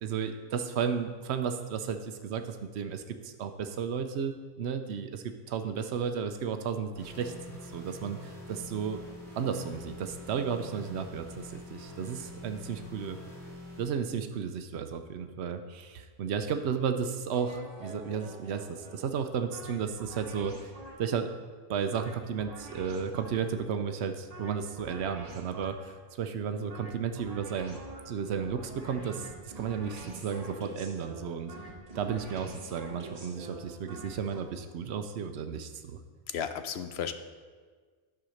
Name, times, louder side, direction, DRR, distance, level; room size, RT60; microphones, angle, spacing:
voice 1, 0.0-7.3 7.6-9.0 9.4-13.2 13.8-20.7 21.0-21.3 21.7-27.8 28.1-31.5 31.9-36.0, right 7 dB, 85° right, 7 dB, 0.9 m, -33 dB
sound 1, 6.9-13.8, left 1 dB, ahead, 2.6 m, -46 dB
sound 2, 17.3-21.2 21.9-23.6 24.3-26.0 26.7-34.4, right 2 dB, 35° right, 1.3 m, -46 dB
voice 2, 36.3-37.1, left 8 dB, 80° left, 10 dB, 0.9 m, -34 dB
10.5 x 4.8 x 6.3 m, 1.5 s
omnidirectional pair, 1.1 m